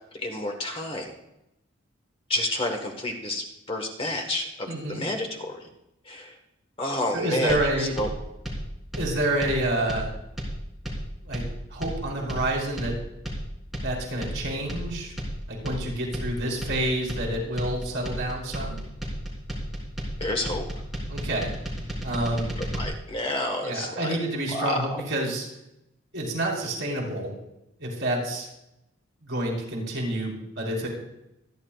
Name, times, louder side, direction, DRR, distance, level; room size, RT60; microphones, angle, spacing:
voice 1, 0.2-1.1 2.3-5.6 6.1-6.3 6.8-8.1 20.2-20.6 22.6-24.2 24.5-24.8, left 1 dB, 30° left, 3 dB, 1.4 m, -29 dB
voice 2, 4.6-5.1 7.1-8.0 9.0-10.1 11.2-13.0 13.8-15.1 15.5-18.8 21.1-21.5 22.0-22.5 23.6-25.5 26.1-27.3 27.8-28.5 29.2-30.9, right 1 dB, 60° right, -2 dB, 4.2 m, -28 dB
sound 1, 7.5-22.8, equal, ahead, 3.3 m, -33 dB
25.0 x 10.0 x 2.4 m, 0.87 s
head